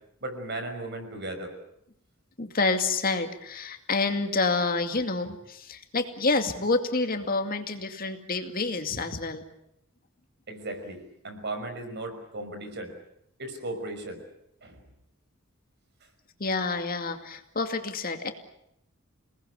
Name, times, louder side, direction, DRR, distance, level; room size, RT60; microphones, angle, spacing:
voice 1, 0.2-1.5 10.5-12.9 13.4-14.2 14.6-14.8, right 2 dB, 55° right, 7 dB, 5.7 m, -36 dB
voice 2, 2.4-9.4 16.4-18.3, left 3 dB, 45° left, 6 dB, 2.3 m, -28 dB
29.0 x 19.5 x 8.3 m, 0.79 s
head